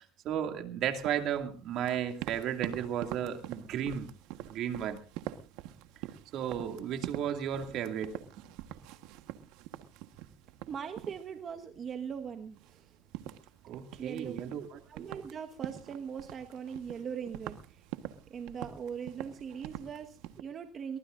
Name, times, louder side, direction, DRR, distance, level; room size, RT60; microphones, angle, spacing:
voice 1, 0.0-4.1 4.5-5.0 6.3-8.2 13.6-14.8, right 9 dB, 65° right, 6 dB, 2.4 m, -34 dB
sound 1, 0.9-20.4, right 13 dB, 85° right, 1.3 m, -45 dB
voice 2, 10.7-12.9 14.0-14.4 14.9-17.8 18.3-21.0, right 7 dB, 45° right, 5 dB, 1.4 m, -40 dB
23.0 x 19.5 x 2.6 m, 0.35 s
supercardioid pair, 105°, 0 cm